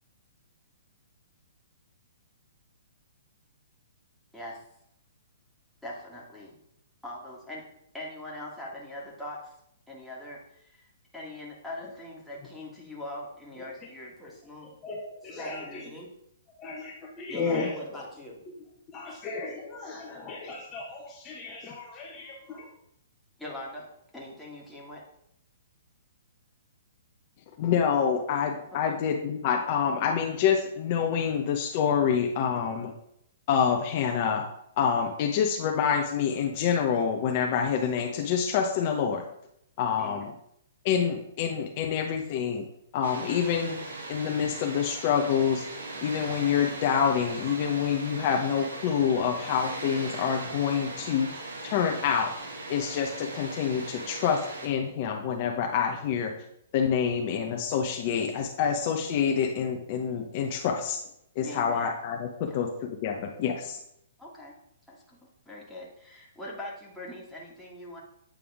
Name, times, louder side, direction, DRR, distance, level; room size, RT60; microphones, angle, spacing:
voice 1, 5.8-6.5 7.0-7.6 7.9-9.5 9.9-10.9 11.1-14.7 15.4-16.1 17.3-18.4 19.1-19.2 23.4-23.9 24.1-25.0 28.7-29.0 40.0-40.3 61.4-62.0 62.4-62.6 64.2-64.5 64.9-65.2 65.4-68.0, left 1 dB, ahead, -6 dB, 1.7 m, -42 dB
voice 2, 14.8-15.9 16.6-17.8 18.5-18.6 18.9-22.7, left 4 dB, 25° left, -2 dB, 1.0 m, -36 dB
voice 3, 27.6-32.9 33.5-34.4 34.8-39.2 39.8-40.3 40.8-42.7 42.9-43.8 44.1-45.6 46.0-51.4 51.6-52.3 52.7-56.3 56.7-61.0 61.4-63.8, left 7 dB, 45° left, 2 dB, 0.7 m, -27 dB
Water, 43.0-54.7, right 2 dB, 75° right, 1.6 m, -39 dB
8.5 x 3.6 x 3.5 m, 0.74 s
hypercardioid pair, 135°, 0 cm